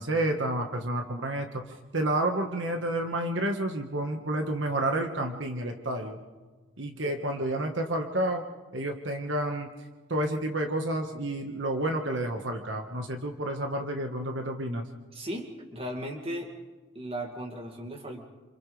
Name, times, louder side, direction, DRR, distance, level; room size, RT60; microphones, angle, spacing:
voice 1, 0.0-1.6 1.9-6.2 6.8-8.4 8.7-9.7 10.1-14.9, right 1 dB, 75° right, 4 dB, 1.6 m, -30 dB
voice 2, 15.1-16.5 16.9-18.2, equal, 30° right, 2 dB, 2.4 m, -36 dB
28.5 x 27.0 x 3.4 m, 1.4 s
head